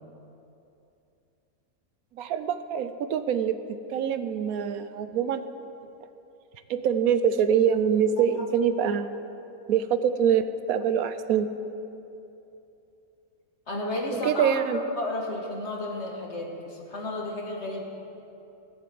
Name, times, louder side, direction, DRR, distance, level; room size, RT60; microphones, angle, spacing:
voice 1, 2.2-3.6 3.9-5.5 6.7-9.1 9.7-11.5 14.1-14.8, right 8 dB, 80° right, 11 dB, 1.1 m, -24 dB
voice 2, 13.7-17.9, left 1 dB, 50° left, -1 dB, 2.1 m, -32 dB
17.0 x 7.7 x 7.6 m, 2.8 s
omnidirectional pair, 1.5 m